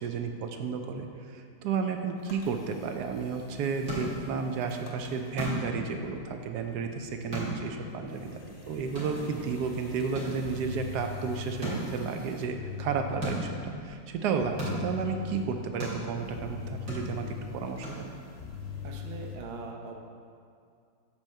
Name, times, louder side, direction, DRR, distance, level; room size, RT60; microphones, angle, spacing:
voice 1, 0.0-18.1, right 5 dB, 70° right, 5 dB, 1.0 m, -32 dB
sound 1, 2.2-19.4, left 7 dB, 50° left, 0.8 m, -44 dB
sound 2, 3.3-18.5, equal, 45° right, 2.1 m, -40 dB
voice 2, 8.1-8.6 18.8-20.0, right 4 dB, 85° right, 2 dB, 1.6 m, -42 dB
8.2 x 3.4 x 6.5 m, 2.3 s
omnidirectional pair, 2.1 m